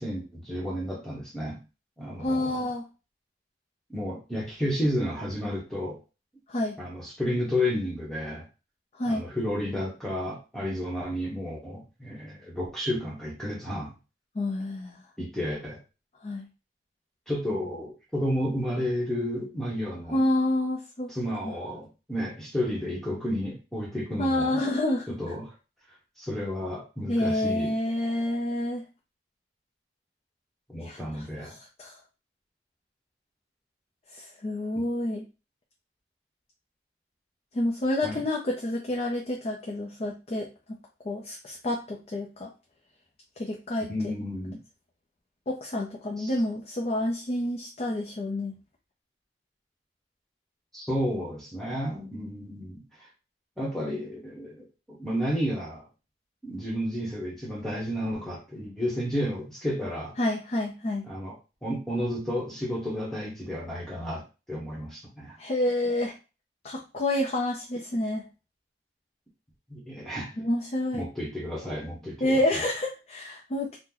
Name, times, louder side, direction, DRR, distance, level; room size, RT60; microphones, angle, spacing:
voice 1, 0.0-1.6 2.0-2.7 3.9-6.0 6.8-8.4 9.0-13.9 15.2-15.8 17.3-20.2 21.1-24.6 25.1-25.5 26.2-27.7 30.7-31.5 34.8-34.9 38.0-38.2 43.9-44.6 46.2-46.3 50.7-53.1 53.6-55.8 56.4-60.1 61.1-64.2 64.5-65.4 69.7-70.4 70.9-72.7, equal, ahead, -4 dB, 0.9 m, -32 dB
voice 2, 2.2-2.9 6.5-6.8 9.0-9.2 14.4-15.0 16.2-16.5 20.1-21.1 21.4-21.5 24.2-25.2 27.1-28.8 30.8-31.0 31.4-31.5 31.8-31.9 34.1-35.2 37.5-40.8 41.1-42.5 43.4-44.1 45.5-48.5 60.2-61.1 65.4-66.2 66.6-68.2 70.4-71.0 72.2-73.8, left 1 dB, 35° left, 0 dB, 0.5 m, -28 dB
2.8 x 2.1 x 3.7 m, 0.30 s
head